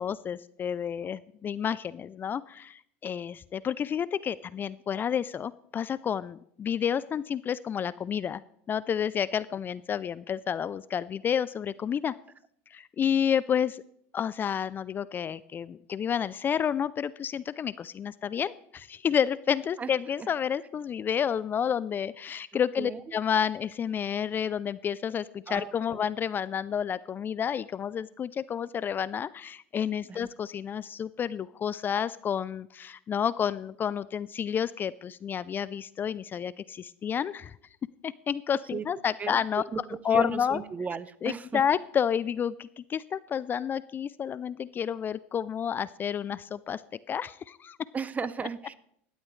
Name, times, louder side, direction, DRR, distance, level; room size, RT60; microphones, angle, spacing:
voice 1, 0.0-8.4 8.7-12.1 12.7-13.8 14.1-37.6 38.0-39.6 40.0-40.6 41.2-46.8 47.1-47.8, left 8 dB, 30° left, 18 dB, 0.4 m, -30 dB
voice 2, 25.5-26.0 30.1-30.3 38.7-38.8 39.2-39.4 39.7-41.6 47.9-48.7, right 5 dB, 20° right, 16 dB, 0.7 m, -35 dB
17.0 x 12.5 x 3.2 m, 0.68 s
supercardioid pair, 105°, 7 cm